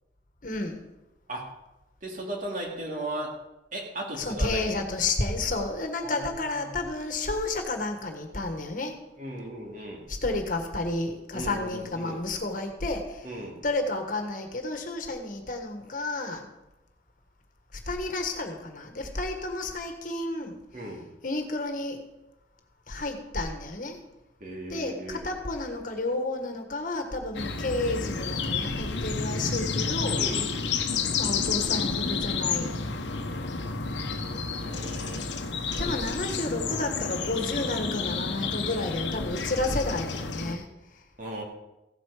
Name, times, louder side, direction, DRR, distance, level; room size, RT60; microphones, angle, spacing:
voice 1, 0.4-0.8 4.2-8.9 10.1-13.3 13.6-16.5 17.7-20.6 21.2-22.0 22.9-24.0 24.7-30.3 31.2-32.8 35.8-40.7, left 2 dB, 45° left, 5 dB, 1.6 m, -31 dB
voice 2, 2.0-3.3 3.7-4.6 6.0-6.8 9.2-10.1 11.3-12.2 13.2-13.6 20.7-21.1 24.4-25.3 30.2-30.5 34.6-35.2 35.7-36.0 36.6-37.0 41.2-41.4, right 1 dB, 45° right, -1 dB, 2.7 m, -37 dB
sound 1, 27.3-40.5, left 5 dB, 85° left, 1.0 m, -30 dB
16.0 x 8.4 x 5.0 m, 0.96 s
head